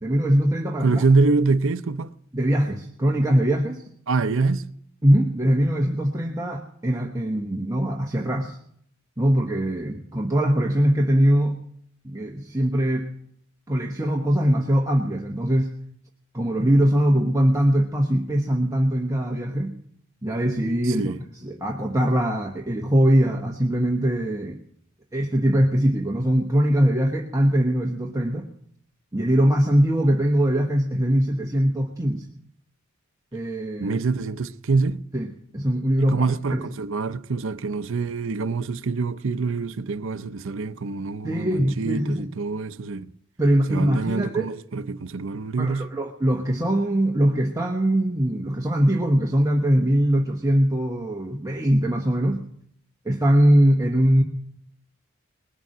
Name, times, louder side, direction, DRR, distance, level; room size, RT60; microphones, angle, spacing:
voice 1, 0.0-1.0 2.3-3.9 5.0-8.6 9.2-11.6 12.0-13.1 13.7-15.8 16.3-19.8 20.2-21.1 21.4-24.6 25.1-28.5 29.1-32.3 33.3-34.0 35.1-36.2 36.5-36.6 41.2-42.3 43.4-44.5 45.6-52.5 53.0-54.2, equal, 15° right, 1.1 m, -22 dB
voice 2, 0.8-2.1 4.1-4.7 20.9-21.2 33.8-35.0 36.0-43.1 43.7-45.9, right 4 dB, 65° right, 0.6 m, -25 dB
20.5 x 7.0 x 9.1 m
head